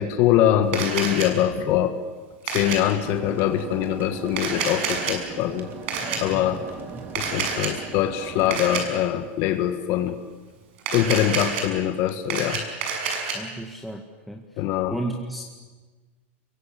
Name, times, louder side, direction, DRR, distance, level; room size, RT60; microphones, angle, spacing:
voice 1, 0.0-1.9 2.4-5.7 6.2-6.6 7.2-10.2 10.9-12.6 14.6-14.9, left 11 dB, 45° left, 7 dB, 1.8 m, -23 dB
Camera, 0.7-1.3 2.5-2.8 4.3-5.1 5.9-6.2 7.1-7.7 8.5-8.8 10.8-11.6 12.1-13.3, right 5 dB, 65° right, 6.6 m, -28 dB
sound 1, 2.7-8.9, right 5 dB, 30° right, 3.5 m, -39 dB
voice 2, 6.0-6.6 6.9-7.1 13.3-14.4 14.9-15.6, right 1 dB, ahead, 3 dB, 1.8 m, -34 dB
27.5 x 23.0 x 8.6 m, 1.4 s
supercardioid pair, 150°, 7 cm